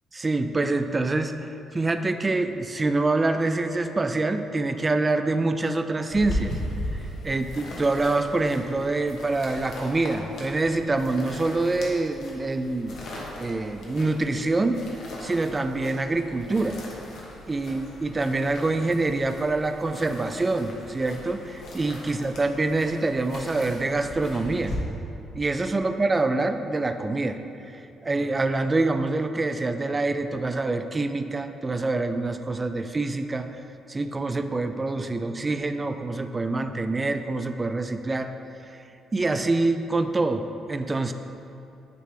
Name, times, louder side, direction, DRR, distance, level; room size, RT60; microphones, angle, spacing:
voice 1, 0.1-6.5 6.9-12.9 13.4-14.8 15.2-16.8 17.5-24.8 25.3-27.4 27.7-33.6 33.9-38.3 38.6-38.8 39.1-41.1, right 2 dB, 25° right, 8 dB, 0.3 m, -26 dB
sound 1, 6.1-24.8, left 1 dB, 70° left, 1.0 m, -38 dB
9.1 x 3.3 x 3.3 m, 2.8 s
cardioid pair, 90°, 0 cm